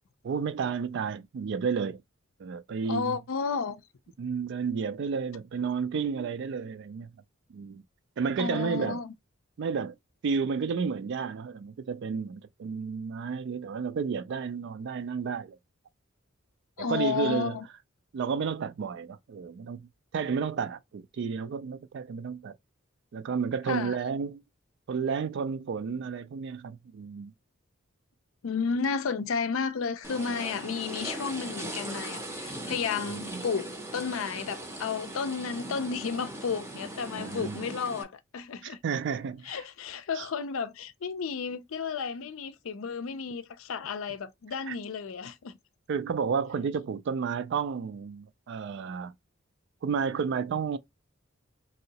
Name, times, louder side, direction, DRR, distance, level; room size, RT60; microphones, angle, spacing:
voice 1, 0.2-2.0 2.4-3.2 4.2-7.1 7.5-7.8 8.2-9.0 9.6-10.0 10.2-15.6 16.8-17.6 18.1-22.5 23.1-24.4 24.9-27.3 33.1-33.4 37.2-37.7 38.6-39.6 40.2-40.3 44.7-44.8 45.9-49.1 49.8-50.8, right 6 dB, 55° right, 0.3 m, -31 dB
voice 2, 2.9-3.8 8.4-9.1 16.8-17.7 23.7-24.0 28.4-38.8 39.4-45.5, left 5 dB, 70° left, 0.4 m, -32 dB
sound 1, 30.0-38.0, right 1 dB, 10° right, 0.6 m, -39 dB
3.0 x 2.7 x 2.8 m
head